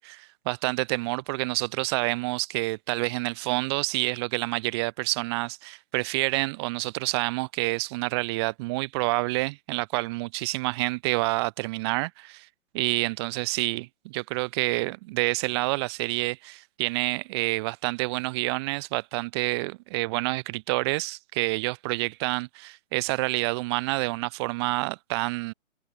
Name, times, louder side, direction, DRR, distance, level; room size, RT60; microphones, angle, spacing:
voice 1, 0.0-12.5 12.7-25.5, right 24 dB, 20° right, 1.5 m, -28 dB
figure-of-eight pair, 140°, 38 cm